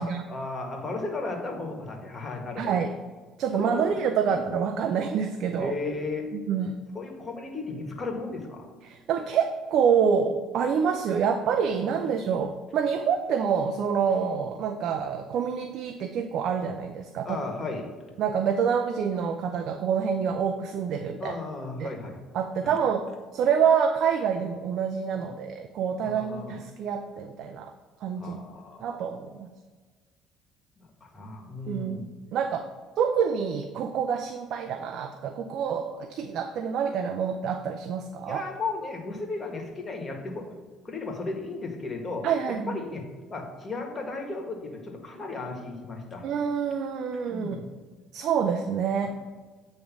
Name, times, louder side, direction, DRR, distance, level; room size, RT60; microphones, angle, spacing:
voice 1, 0.3-2.7 3.5-3.9 4.3-4.4 5.6-6.3 6.9-8.7 11.8-12.1 17.2-17.9 21.2-22.2 22.6-22.7 25.1-25.3 26.0-26.6 28.2-29.0 30.8-32.1 38.3-40.5 40.8-46.3 47.3-47.7 49.0-49.1, left 3 dB, 30° left, 2 dB, 1.6 m, -35 dB
voice 2, 2.6-2.9 3.4-5.8 6.3-6.8 8.9-17.4 18.2-21.3 21.8-21.9 22.3-27.7 28.0-28.4 28.8-29.5 31.7-32.1 32.3-32.7 33.0-38.4 42.2-42.8 46.2-47.6 48.1-49.1, right 7 dB, 65° right, 6 dB, 0.5 m, -27 dB
8.6 x 3.2 x 6.0 m, 1.4 s
supercardioid pair, 80°, 0 cm